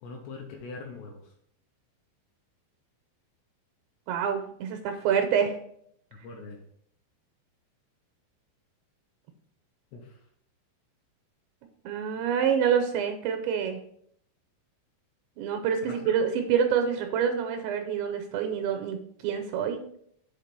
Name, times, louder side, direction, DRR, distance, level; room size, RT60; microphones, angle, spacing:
voice 1, 0.0-1.3 6.2-6.6 9.9-10.1 15.8-16.1, left 3 dB, 80° left, 1 dB, 2.6 m, -42 dB
voice 2, 4.1-5.6 11.8-13.8 15.4-19.9, right 7 dB, 80° right, 5 dB, 2.8 m, -27 dB
7.9 x 3.8 x 5.2 m, 0.68 s
omnidirectional pair, 5.6 m